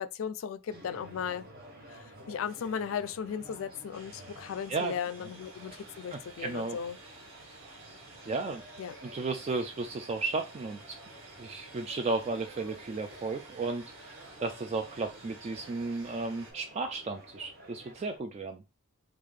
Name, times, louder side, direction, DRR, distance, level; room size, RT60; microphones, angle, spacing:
voice 1, 0.0-1.5 1.9-7.0 8.8-9.0, left 7 dB, 80° left, 0.3 m, -36 dB
sound 1, 0.7-18.2, equal, 50° right, 0.9 m, -52 dB
sound 2, 3.9-16.5, right 3 dB, 75° right, 1.6 m, -53 dB
voice 2, 6.4-6.8 8.3-8.6 9.0-11.0 11.4-18.6, right 3 dB, 30° right, 0.3 m, -34 dB
3.7 x 2.5 x 3.2 m
head